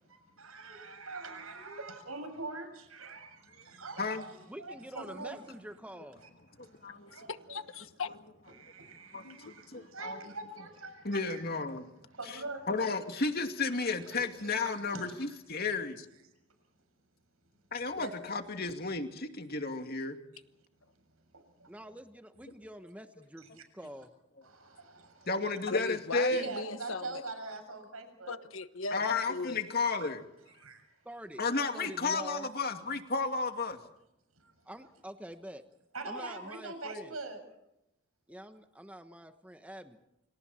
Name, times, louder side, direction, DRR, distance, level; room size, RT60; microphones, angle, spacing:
voice 1, 0.1-5.4 6.2-6.3 6.6-7.6 8.5-11.4 12.1-12.7 13.8-15.3 18.0-18.1 21.3-22.0 24.4-25.3 26.3-28.4 29.8-30.1 30.6-30.9 34.4-34.5 35.9-37.4, right 3 dB, 80° right, 7.1 m, -44 dB
voice 2, 4.5-6.2 21.7-24.1 31.0-31.4 31.7-32.5 34.6-35.6 36.0-37.1 38.3-40.0, equal, 5° right, 1.2 m, -46 dB
voice 3, 7.3-8.1 9.2-9.5 25.7-27.2 28.3-29.7, left 3 dB, 70° left, 1.3 m, -38 dB
voice 4, 9.1-10.3 11.0-11.8 12.3-12.4 12.7-16.0 17.7-20.2 25.3-26.4 28.9-30.2 31.4-33.8, left 3 dB, 45° left, 2.5 m, -33 dB
29.0 x 27.0 x 4.4 m
head